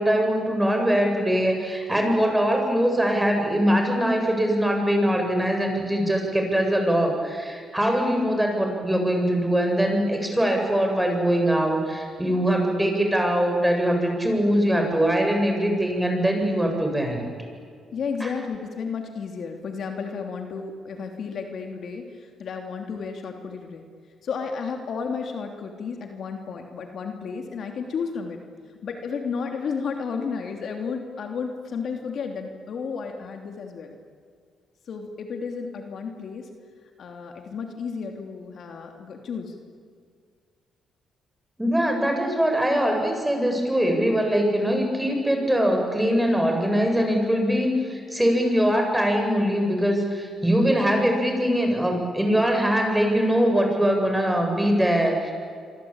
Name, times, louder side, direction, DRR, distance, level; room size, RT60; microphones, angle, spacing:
voice 1, 0.0-17.3 18.2-18.4 41.6-55.3, equal, 5° right, 3 dB, 7.7 m, -22 dB
voice 2, 17.9-23.8 24.2-28.4 28.8-34.0 34.9-36.5 37.0-39.6, left 5 dB, 60° left, 3 dB, 3.1 m, -32 dB
26.5 x 24.5 x 9.0 m, 2.1 s
cardioid pair, 90°, 0 cm